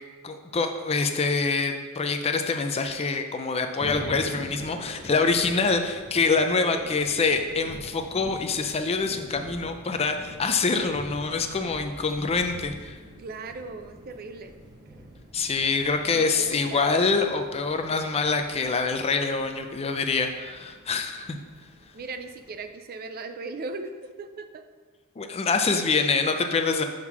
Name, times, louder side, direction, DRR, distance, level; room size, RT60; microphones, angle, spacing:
voice 1, 0.2-13.0 15.3-21.4 25.2-26.8, left 4 dB, 30° left, 6 dB, 0.4 m, -25 dB
sound 1, 3.8-22.7, right 1 dB, 20° right, 0.9 m, -45 dB
voice 2, 6.6-6.9 13.2-14.5 16.1-16.9 21.9-24.6, right 3 dB, 45° right, 8 dB, 0.4 m, -38 dB
6.4 x 3.6 x 5.9 m, 1.4 s
head